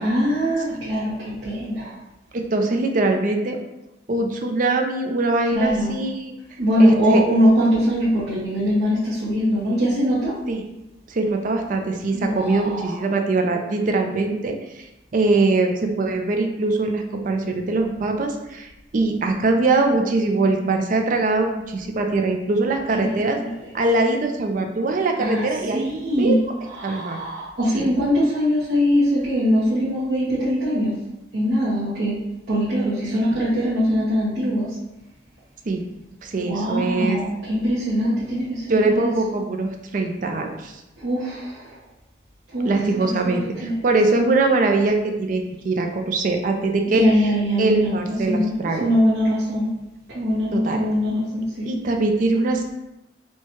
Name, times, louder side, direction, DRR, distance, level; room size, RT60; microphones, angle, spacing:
voice 1, 0.0-2.0 5.6-6.0 6.6-10.3 12.1-13.0 23.0-23.6 25.2-26.4 26.7-30.9 31.3-32.2 32.5-34.7 36.4-39.1 41.0-41.7 42.5-42.7 43.0-43.8 44.2-44.4 46.9-47.9 48.3-48.5 48.8-49.7 50.1-51.7, equal, 80° right, -9 dB, 0.9 m, -22 dB
voice 2, 2.3-3.6 4.1-6.3 6.8-7.2 10.5-10.6 11.1-14.9 15.1-23.4 23.7-26.4 26.8-27.2 27.7-27.9 35.7-35.8 36.2-37.2 38.7-40.7 42.7-47.0 47.6-48.9 50.5-50.8 51.7-52.7, right 3 dB, 45° right, 4 dB, 0.4 m, -22 dB
4.5 x 2.2 x 2.9 m, 0.93 s
head